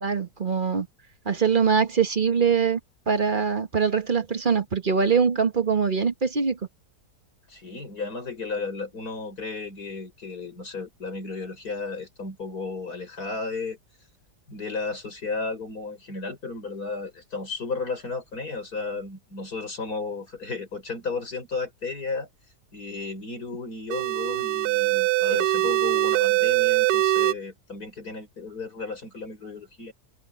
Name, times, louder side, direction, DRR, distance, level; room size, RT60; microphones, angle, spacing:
voice 1, 0.0-0.9 1.2-2.8 3.1-6.6, right 6 dB, 30° right, 1.4 m, -23 dB
voice 2, 7.5-13.8 14.5-22.3 22.7-29.9, left 4 dB, 60° left, 5.6 m, -34 dB
sound 1, 23.9-27.3, right 16 dB, 70° right, 1.1 m, -22 dB
omnidirectional pair, 1.8 m